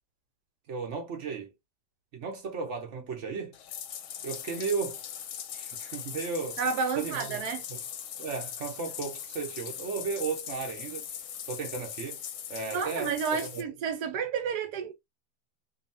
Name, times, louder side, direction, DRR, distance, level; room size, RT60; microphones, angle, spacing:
voice 1, 0.7-1.5 2.1-3.6 4.2-5.0 5.5-6.6 7.0-7.4 7.7-7.8 8.2-11.1 11.5-12.2 12.5-13.6, right 5 dB, 55° right, 0.9 m, -35 dB
Bathtub (filling or washing), 3.5-13.6, left 9 dB, 70° left, 1.0 m, -40 dB
voice 2, 6.6-7.6 12.7-14.9, right 6 dB, 70° right, 1.2 m, -31 dB
2.8 x 2.7 x 2.6 m
omnidirectional pair, 1.8 m